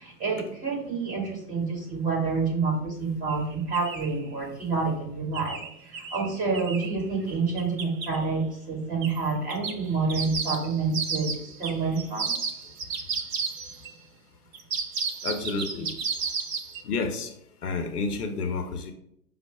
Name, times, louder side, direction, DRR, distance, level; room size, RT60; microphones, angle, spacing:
voice 1, 0.0-12.3, right 4 dB, 15° right, -2 dB, 1.6 m, -28 dB
sound 1, 3.3-3.4 3.7-4.2 5.3-7.0 7.6-8.2 9.0-9.2 9.5-13.9 14.5-16.8, right 5 dB, 55° right, 0.7 m, -32 dB
voice 2, 15.2-15.9 16.8-17.3 17.6-18.9, left 4 dB, 70° left, 5 dB, 0.8 m, -30 dB
5.4 x 2.0 x 4.5 m, 0.72 s
figure-of-eight pair, 110°, 48 cm